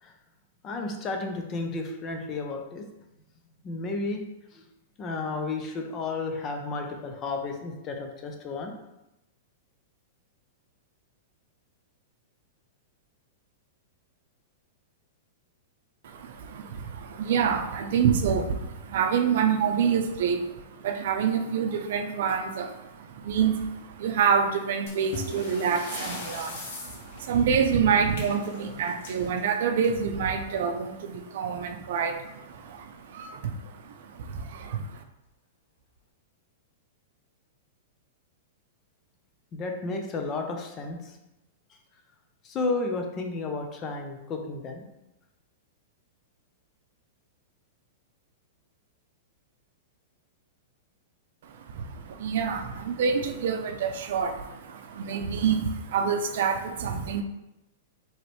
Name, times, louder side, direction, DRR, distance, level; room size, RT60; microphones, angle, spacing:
voice 1, 0.6-2.9 3.6-4.2 4.5-4.6 5.0-8.7 39.5-41.2 41.7-41.8 42.4-44.8, left 3 dB, 25° left, 3 dB, 0.7 m, -32 dB
voice 2, 16.0-35.0 51.4-57.2, right 6 dB, 65° right, 6 dB, 0.5 m, -27 dB
sound 1, 24.9-30.2 31.5-31.7 32.0-32.1 32.7-32.8 33.5-33.8, left 2 dB, 60° left, 1.4 m, -40 dB
4.9 x 3.1 x 3.1 m, 0.92 s
hypercardioid pair, 145°, 0 cm